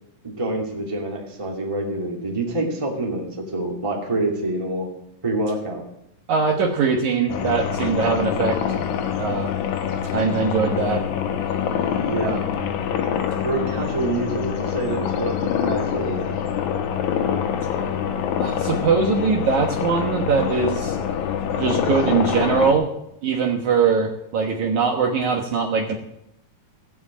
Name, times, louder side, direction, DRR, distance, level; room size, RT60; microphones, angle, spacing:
voice 1, 0.2-4.9 5.2-5.8 12.0-12.4 13.4-16.2, right 2 dB, 10° right, 0 dB, 1.9 m, -26 dB
voice 2, 6.3-8.6 9.2-9.5 10.1-11.0 12.2-12.3 18.4-21.0 21.6-22.9 23.2-26.0, right 5 dB, 60° right, 2 dB, 2.3 m, -21 dB
sound 1, 7.3-22.7, left 8 dB, 65° left, 2.2 m, -25 dB
15.5 x 7.3 x 8.5 m, 0.81 s
omnidirectional pair, 4.3 m